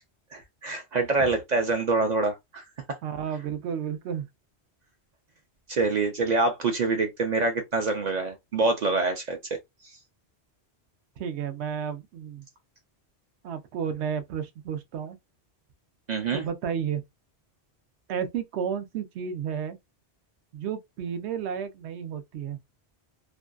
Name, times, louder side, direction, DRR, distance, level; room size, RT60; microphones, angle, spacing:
voice 1, 0.3-2.6 5.7-9.6 16.1-16.4, right 3 dB, 55° right, 0.5 m, -26 dB
voice 2, 3.0-4.3 11.2-12.5 13.4-15.2 16.3-17.0 18.1-19.8 20.5-22.6, right 8 dB, 80° right, 0.8 m, -32 dB
2.5 x 2.2 x 2.3 m
omnidirectional pair, 1.1 m